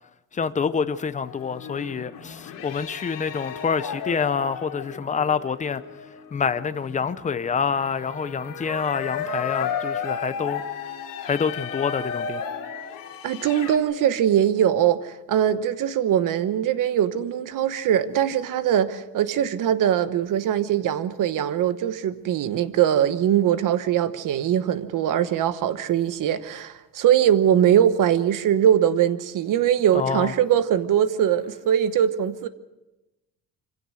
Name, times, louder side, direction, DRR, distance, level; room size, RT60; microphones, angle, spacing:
voice 1, 0.3-5.8 6.3-10.6 11.2-12.4 29.9-30.3, left 6 dB, 20° left, 0.6 m, -27 dB
sound 1, 1.2-13.8, left 7 dB, 70° left, 2.8 m, -34 dB
voice 2, 13.2-32.5, right 10 dB, 65° right, 1.1 m, -21 dB
25.5 x 16.5 x 6.4 m
cardioid pair, 175°, 35 cm